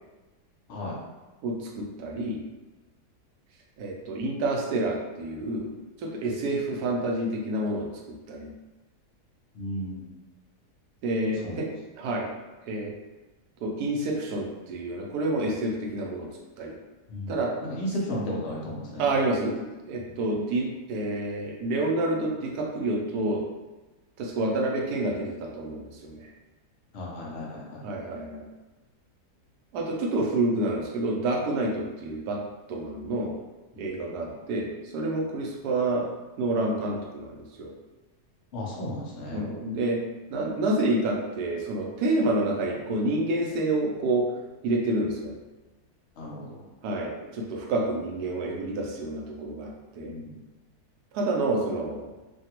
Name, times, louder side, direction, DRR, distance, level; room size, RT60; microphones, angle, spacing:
voice 1, 1.4-2.4 3.8-5.7 6.0-7.9 8.3-8.5 11.0-11.7 12.0-12.3 12.6-12.9 13.6-16.3 16.6-16.8 17.3-17.5 19.0-23.4 24.2-26.3 27.8-28.4 29.7-32.4 32.7-33.3 33.8-36.1 36.4-37.7 39.3-40.0 40.3-44.3 44.6-45.3 46.8-50.1 51.1-52.1, right 2 dB, 75° right, 0 dB, 1.1 m, -28 dB
voice 2, 9.5-10.1 11.4-11.6 17.1-19.2 20.0-20.1 26.9-27.8 34.0-34.3 38.5-39.4 46.2-46.7 50.0-50.4, left 1 dB, 55° left, -4 dB, 0.9 m, -35 dB
3.2 x 2.3 x 2.8 m, 1.2 s
omnidirectional pair, 1.7 m